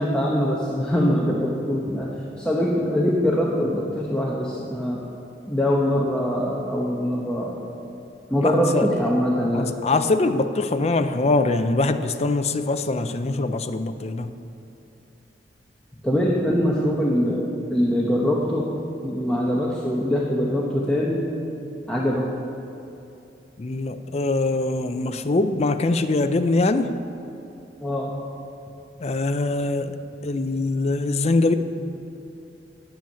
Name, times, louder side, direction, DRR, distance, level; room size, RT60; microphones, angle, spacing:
voice 1, 0.0-2.1 2.4-5.0 5.5-7.6 8.3-9.7 16.0-18.7 19.0-21.2 21.9-22.3 27.8-28.1, equal, 5° left, -4 dB, 0.9 m, -23 dB
voice 2, 8.4-8.9 9.1-9.2 9.5-14.3 23.6-26.9 29.0-30.0 30.2-31.5, left 2 dB, 35° left, 9 dB, 0.5 m, -23 dB
9.0 x 7.1 x 8.8 m, 2.8 s
head